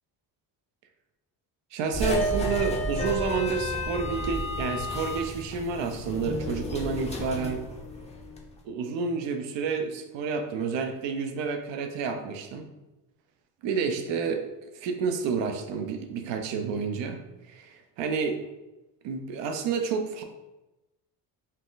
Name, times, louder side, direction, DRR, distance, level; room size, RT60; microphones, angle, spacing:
voice 1, 1.7-7.6 8.6-12.7 13.6-14.5 14.7-18.4 19.0-20.2, right 5 dB, 80° right, 6 dB, 0.7 m, -30 dB
sound 1, 1.9-8.4, equal, 15° left, 0.5 m, -31 dB
4.3 x 2.4 x 3.8 m, 1.0 s
cardioid pair, 105°, 43 cm